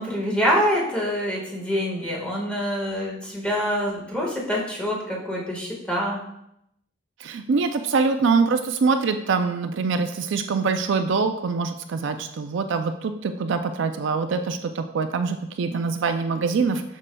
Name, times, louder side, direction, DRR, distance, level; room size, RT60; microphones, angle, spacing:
voice 1, 0.0-6.2, equal, 5° left, -3 dB, 1.5 m, -25 dB
voice 2, 7.2-16.8, right 4 dB, 65° right, 7 dB, 0.4 m, -24 dB
7.4 x 6.4 x 2.2 m, 0.79 s
head